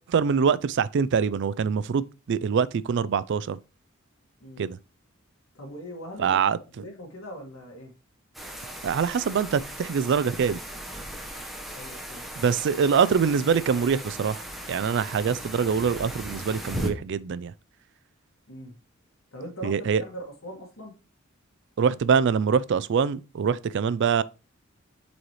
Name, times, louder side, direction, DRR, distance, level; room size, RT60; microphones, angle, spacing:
voice 1, 0.1-2.0 2.3-3.6 4.6-4.8 6.2-6.6 8.8-10.6 12.4-17.5 19.6-20.0 21.8-24.2, right 6 dB, 55° right, 0.4 m, -24 dB
voice 2, 5.5-6.4 6.7-7.9 11.7-12.2 18.5-18.7 19.3-20.9, equal, 75° left, 1.9 m, -41 dB
sound 1, 8.3-16.9, equal, ahead, 1.1 m, -37 dB
7.6 x 4.2 x 3.1 m
head